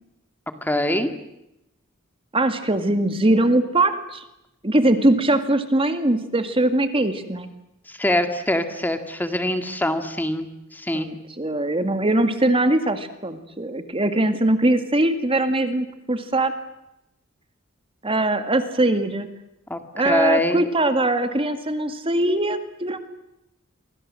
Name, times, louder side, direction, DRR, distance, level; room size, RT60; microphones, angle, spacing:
voice 1, 0.6-1.1 7.9-10.5 10.7-11.1 19.7-20.7, left 1 dB, 10° left, 7 dB, 2.1 m, -23 dB
voice 2, 2.3-4.2 4.6-7.5 10.9-16.5 18.0-19.3 19.9-23.0, right 1 dB, 25° right, 9 dB, 2.0 m, -21 dB
28.5 x 24.5 x 7.7 m, 0.89 s
head